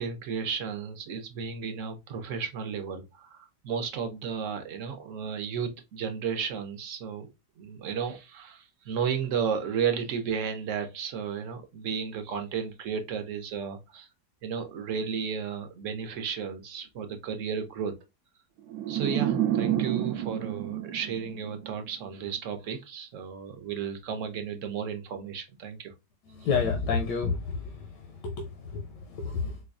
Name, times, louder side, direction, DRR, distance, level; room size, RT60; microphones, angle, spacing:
voice 1, 0.0-7.3 7.6-14.1 14.4-17.9 18.9-25.9, right 6 dB, 60° right, 0.8 m, -33 dB
sound 1, 18.7-21.9, right 11 dB, 80° right, 1.1 m, -29 dB
voice 2, 26.3-29.6, left 5 dB, 85° left, 1.3 m, -30 dB
4.6 x 2.2 x 2.4 m
omnidirectional pair, 1.8 m